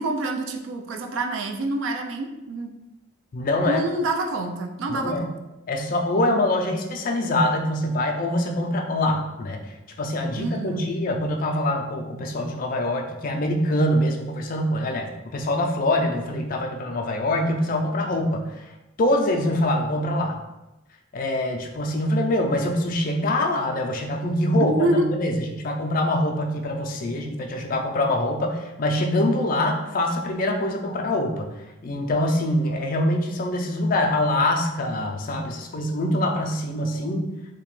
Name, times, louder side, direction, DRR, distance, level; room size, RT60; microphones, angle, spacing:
voice 1, 0.0-2.7 3.6-5.4 10.4-10.9 24.6-25.1, right 2 dB, 65° right, 3 dB, 0.3 m, -27 dB
voice 2, 3.3-3.8 4.9-5.3 5.7-18.5 19.0-20.4 21.1-31.5 31.8-37.3, left 1 dB, 40° left, 2 dB, 0.3 m, -24 dB
2.8 x 2.1 x 3.0 m, 1.0 s
head